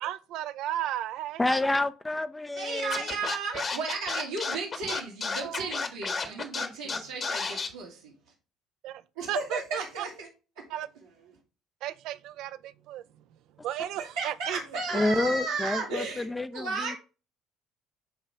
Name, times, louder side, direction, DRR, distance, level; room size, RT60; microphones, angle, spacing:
voice 1, 0.0-1.6 3.5-3.6 5.4-5.7 8.8-9.0 9.3-10.1 10.7-10.9 11.8-13.0 13.6-14.6, right 12 dB, 65° right, 0.5 m, -34 dB
voice 2, 1.4-3.1 6.6-7.0 13.8-13.9 14.9-17.0, left 2 dB, 15° left, 0.6 m, -29 dB
voice 3, 2.6-8.1 9.2-10.3 10.6-10.7 14.2-16.3 16.5-17.0, right 4 dB, 90° right, 1.9 m, -34 dB
Scratching (performance technique), 2.9-7.7, left 4 dB, 40° left, 1.5 m, -31 dB
9.1 x 3.1 x 5.0 m
hypercardioid pair, 60°, 0 cm